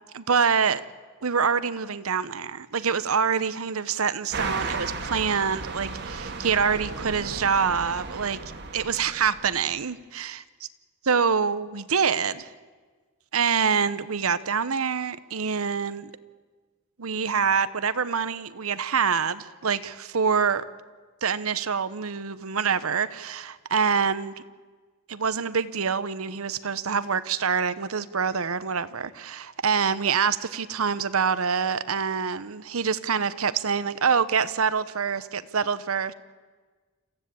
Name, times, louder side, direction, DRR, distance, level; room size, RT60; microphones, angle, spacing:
voice 1, 0.1-0.8 1.2-8.4 8.7-10.4 11.1-12.5 13.3-16.1 17.0-20.6 21.2-24.3 25.1-36.1, right 6 dB, 80° right, 15 dB, 0.9 m, -25 dB
sound 1, 4.3-9.7, right 3 dB, 50° right, 1.8 m, -35 dB
27.0 x 15.5 x 8.6 m, 1.4 s
head